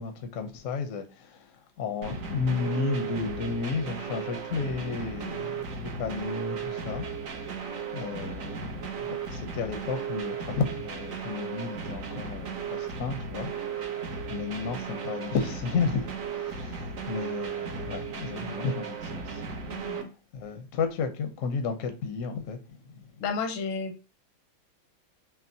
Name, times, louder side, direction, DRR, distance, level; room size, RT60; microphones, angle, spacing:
voice 1, 0.0-7.1 7.3-19.4 19.9-20.1 20.3-23.2, left 5 dB, 65° left, 0.8 m, -33 dB
sound 1, 2.0-20.0, right 6 dB, 60° right, 0.8 m, -36 dB
voice 2, 19.7-20.1 23.2-24.0, left 5 dB, 85° left, 1.5 m, -32 dB
6.1 x 2.1 x 2.7 m
omnidirectional pair, 2.2 m